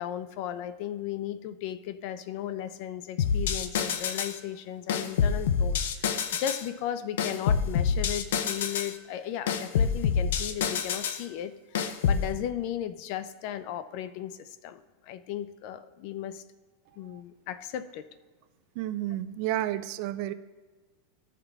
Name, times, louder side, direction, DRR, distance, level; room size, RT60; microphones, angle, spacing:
voice 1, 0.0-16.4 17.0-18.1, left 10 dB, 45° left, 12 dB, 0.4 m, -36 dB
sound 1, 3.2-4.4 4.9-6.7 7.2-8.9 9.5-11.2 11.8-12.3, left 6 dB, 85° left, 0.7 m, -27 dB
voice 2, 18.8-20.3, right 13 dB, 45° right, 13 dB, 0.4 m, -31 dB
13.5 x 5.8 x 3.5 m, 1.3 s
supercardioid pair, 170°, 0 cm